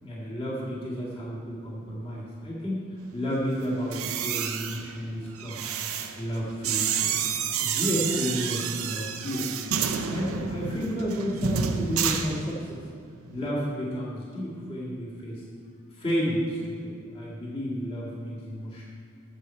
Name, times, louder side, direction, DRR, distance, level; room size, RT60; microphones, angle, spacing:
voice 1, 0.0-5.7 6.2-9.5 10.1-12.8 13.3-15.4 16.0-18.8, equal, 25° left, -6 dB, 1.9 m, -31 dB
sound 1, 3.8-12.9 13.2-13.5, right 7 dB, 75° right, 0.6 m, -30 dB
13.0 x 7.5 x 4.5 m, 2.3 s
head